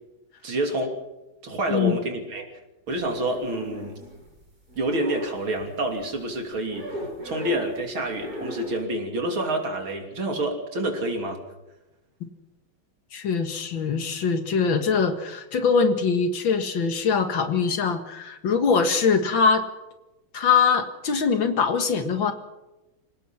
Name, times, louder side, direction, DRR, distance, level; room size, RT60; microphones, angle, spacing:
voice 1, 0.4-1.0 1.4-2.5 2.9-4.0 4.8-11.4, right 1 dB, 75° right, 3 dB, 3.9 m, -28 dB
sound 1, 2.9-4.4 4.7-6.0 6.7-7.8 8.1-8.8, equal, 45° right, 6.7 m, -37 dB
voice 2, 13.1-19.6 20.3-22.3, left 5 dB, 70° left, 7 dB, 2.4 m, -22 dB
27.0 x 17.5 x 5.9 m, 1.0 s
omnidirectional pair, 2.3 m